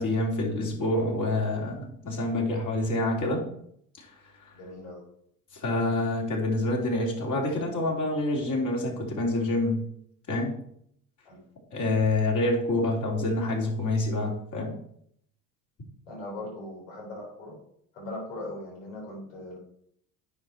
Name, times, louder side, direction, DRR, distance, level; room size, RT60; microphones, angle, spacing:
voice 1, 0.0-3.4 4.0-4.1 5.5-9.8 10.3-10.5 11.7-14.7, left 2 dB, 50° left, -1 dB, 3.5 m, -27 dB
voice 2, 4.5-5.0 11.2-11.4 16.1-17.6 17.9-19.6, left 1 dB, 85° left, -2 dB, 3.8 m, -39 dB
9.4 x 5.8 x 4.7 m, 0.69 s
hypercardioid pair, 70°, 39 cm